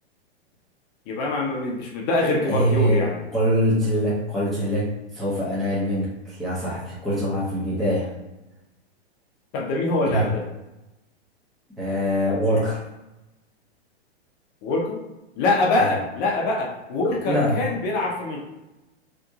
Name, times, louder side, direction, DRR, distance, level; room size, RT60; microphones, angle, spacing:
voice 1, 1.1-3.2 9.5-10.4 14.6-15.0 15.4-18.4, left 2 dB, 30° left, 0 dB, 0.7 m, -24 dB
voice 2, 2.4-3.0 3.3-8.1 10.0-10.3 11.8-12.8 15.8-15.9 17.2-17.6, equal, ahead, -10 dB, 1.0 m, -23 dB
2.9 x 2.5 x 3.5 m, 0.98 s
hypercardioid pair, 135°, 32 cm